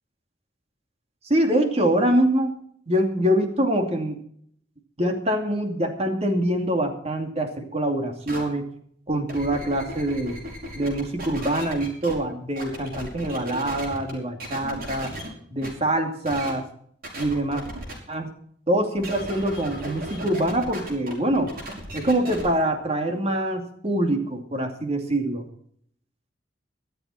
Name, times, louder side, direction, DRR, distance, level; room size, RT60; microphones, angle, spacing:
voice 1, 1.3-2.6 2.9-4.2 5.0-8.6 9.1-10.4 10.8-15.1 15.5-16.7 17.2-17.6 18.1-18.3 18.7-21.5 21.9-25.4, right 1 dB, 35° right, 4 dB, 2.5 m, -24 dB
sound 1, 8.3-8.4 9.1-12.1 12.6-14.1 14.4-15.3 15.6-15.7 16.2-16.5 17.0-17.9 19.0-22.5, right 1 dB, 55° right, 5.9 m, -36 dB
24.0 x 8.1 x 4.3 m, 0.63 s
head